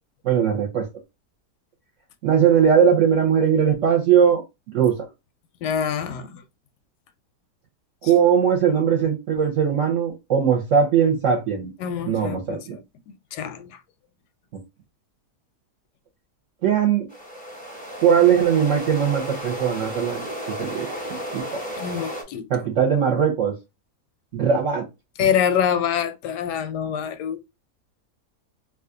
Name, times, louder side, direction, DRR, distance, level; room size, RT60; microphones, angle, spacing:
voice 1, 0.2-0.9 2.2-4.4 4.7-5.0 8.0-11.7 12.1-12.8 16.6-17.1 18.0-20.2 20.6-21.0 21.3-21.6 22.5-23.6 24.3-24.8, right 7 dB, 60° right, 0.9 m, -19 dB
voice 2, 5.6-6.4 8.0-8.1 11.8-12.8 13.1-13.7 21.8-22.5 25.2-27.4, left 8 dB, 85° left, 1.2 m, -25 dB
sound 1, 17.1-22.2, equal, 5° left, 0.7 m, -33 dB
2.8 x 2.4 x 3.6 m
omnidirectional pair, 1.8 m